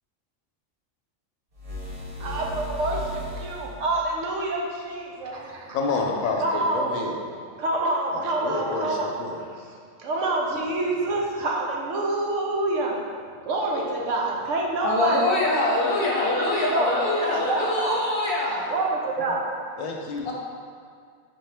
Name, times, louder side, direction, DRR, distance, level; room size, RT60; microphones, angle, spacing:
sound 1, 1.5-3.9, equal, 50° right, 0.4 m, -35 dB
voice 1, 2.2-5.8 6.4-6.9 7.6-9.1 10.0-13.0 13.4-15.2 16.3-16.4 16.7-18.0 18.7-19.5, right 2 dB, 70° right, -1 dB, 1.0 m, -27 dB
voice 2, 5.7-7.1 8.1-9.4 19.8-20.3, left 3 dB, 85° left, 1 dB, 1.0 m, -29 dB
voice 3, 14.8-18.7 20.2-20.3, left 2 dB, 50° left, -4 dB, 0.9 m, -24 dB
4.3 x 3.7 x 3.3 m, 2.2 s
omnidirectional pair, 1.4 m